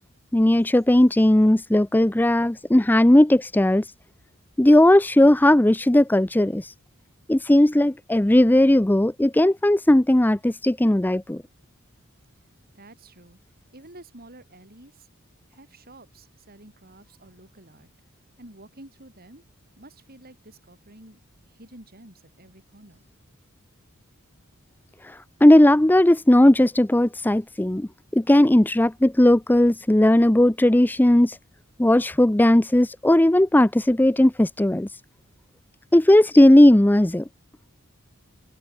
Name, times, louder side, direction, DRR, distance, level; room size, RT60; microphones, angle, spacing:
voice 1, 0.3-3.9 4.6-6.7 7.3-11.4 25.0-31.4 31.8-34.9 35.9-37.2, left 1 dB, 10° left, 0.5 m, -17 dB
voice 2, 12.7-13.4 13.7-15.1 15.5-17.9 18.4-19.4 19.8-23.0, right 1 dB, 45° right, 6.0 m, -49 dB
head